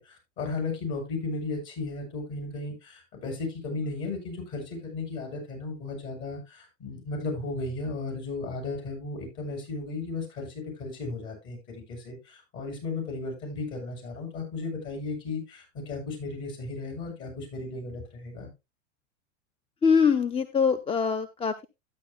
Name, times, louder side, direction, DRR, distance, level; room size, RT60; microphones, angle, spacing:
voice 1, 0.0-18.5, left 3 dB, 45° left, 7.5 m, -35 dB
voice 2, 19.8-21.7, left 6 dB, 15° left, 0.6 m, -23 dB
13.0 x 9.8 x 2.3 m
hypercardioid pair, 100°, 38 cm